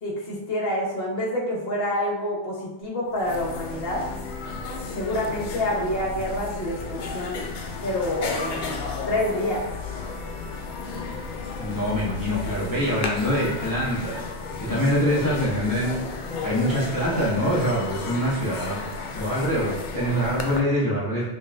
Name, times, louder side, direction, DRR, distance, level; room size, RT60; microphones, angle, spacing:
voice 1, 0.0-4.1 4.9-7.5 7.8-8.8 9.1-9.7 14.6-14.9, left 1 dB, 50° left, -3 dB, 1.1 m, -27 dB
sound 1, 2.8-2.9 3.1-20.6, left 4 dB, 80° left, 0.4 m, -33 dB
voice 2, 11.6-14.3 14.6-16.0 16.4-18.8 19.1-21.2, equal, 20° left, -7 dB, 0.5 m, -24 dB
5.2 x 2.5 x 2.6 m, 0.96 s
omnidirectional pair, 1.4 m